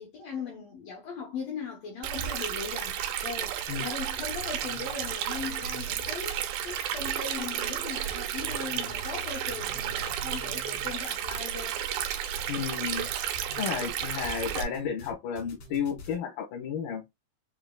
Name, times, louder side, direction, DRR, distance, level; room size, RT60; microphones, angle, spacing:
voice 1, 0.0-3.5 3.8-6.4 6.6-11.8, left 5 dB, 70° left, 1.6 m, -39 dB
Stream, 2.0-14.6, right 10 dB, 90° right, 2.5 m, -32 dB
sound 1, 2.4-3.1 3.4-7.1 7.4-8.1 8.4-16.2, left 2 dB, 55° left, 3.0 m, -47 dB
voice 2, 12.5-13.1 13.6-17.0, left 7 dB, 85° left, 3.0 m, -32 dB
6.8 x 2.7 x 2.2 m
omnidirectional pair, 4.1 m